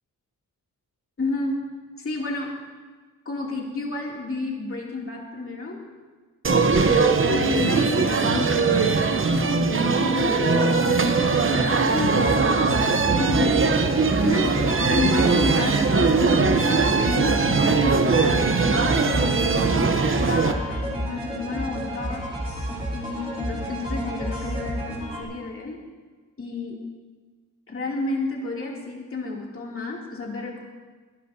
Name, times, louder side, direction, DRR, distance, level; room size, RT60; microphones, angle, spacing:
voice 1, 1.2-1.6 2.0-2.6 3.2-5.8 7.3-9.7 9.9-11.2 11.5-12.5 13.1-14.6 14.9-18.5 19.1-22.3 22.9-25.8 26.4-26.8 27.7-30.6, left 2 dB, 40° left, -2 dB, 2.7 m, -31 dB
sound 1, 6.4-20.5, right 4 dB, 40° right, 0.8 m, -21 dB
sound 2, 12.2-25.2, equal, 20° right, 3.8 m, -31 dB
23.5 x 11.0 x 2.7 m, 1.4 s
wide cardioid pair, 110°, 33 cm